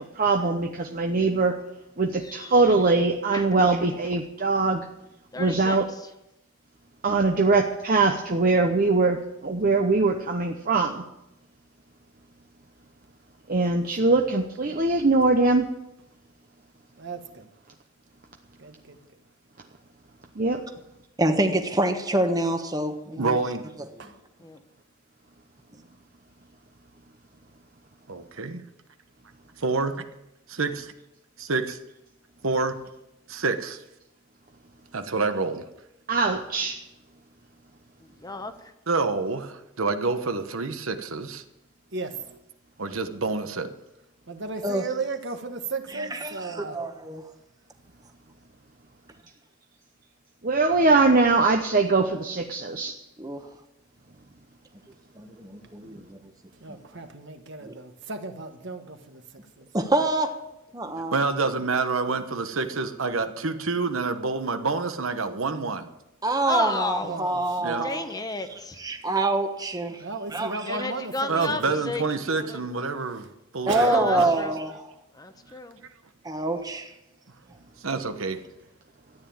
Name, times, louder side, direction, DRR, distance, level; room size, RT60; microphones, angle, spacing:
voice 1, 0.0-1.6 2.0-4.9 5.4-5.8 7.0-11.0 13.5-15.7 20.4-20.6 36.1-36.8 50.4-52.9, right 3 dB, 40° right, 4 dB, 0.9 m, -22 dB
voice 2, 2.2-2.8 3.3-3.9 5.3-6.1 24.4-24.6 38.0-38.7 66.5-67.2 67.8-68.8 70.7-72.6 73.8-74.6 75.1-75.8, left 2 dB, 20° left, 8 dB, 1.0 m, -34 dB
voice 3, 17.0-17.5 18.6-19.0 23.2-23.3 24.0-24.2 41.9-42.2 44.3-46.8 56.6-59.7 67.0-67.8 70.0-71.8 73.7-74.4, right 3 dB, 55° right, 7 dB, 1.5 m, -35 dB
voice 4, 21.2-23.4 44.6-44.8 46.0-47.2 53.2-53.4 55.2-56.2 57.6-57.7 59.7-60.3 60.7-61.1 66.2-68.0 68.8-70.0 70.3-70.6 73.7-74.8 76.2-76.9, right 2 dB, 20° right, 6 dB, 1.2 m, -26 dB
voice 5, 23.2-23.7 28.1-28.6 29.6-30.0 30.5-30.9 31.4-31.8 32.4-32.8 33.3-33.8 34.9-35.7 38.9-41.4 42.8-43.7 61.1-65.9 67.6-67.9 71.3-73.3 73.5-74.3 77.8-78.4, right 3 dB, 75° right, 8 dB, 1.1 m, -27 dB
13.5 x 9.5 x 8.7 m, 0.90 s
head